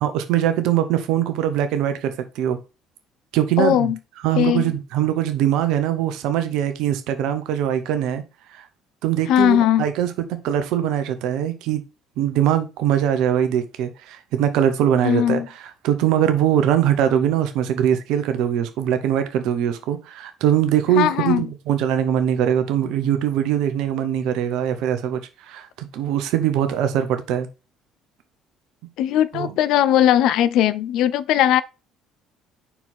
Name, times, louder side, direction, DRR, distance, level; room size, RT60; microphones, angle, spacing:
voice 1, 0.0-2.6 3.3-3.9 4.2-8.2 8.5-8.6 9.0-11.8 12.2-25.2 25.5-27.5 29.3-29.5, right 10 dB, 65° right, 1.1 m, -22 dB
voice 2, 3.6-4.0 4.4-4.7 9.3-9.8 15.0-15.5 21.0-21.4 29.0-31.6, left 11 dB, 65° left, 0.5 m, -18 dB
5.7 x 4.4 x 4.4 m
hypercardioid pair, 55°, 0 cm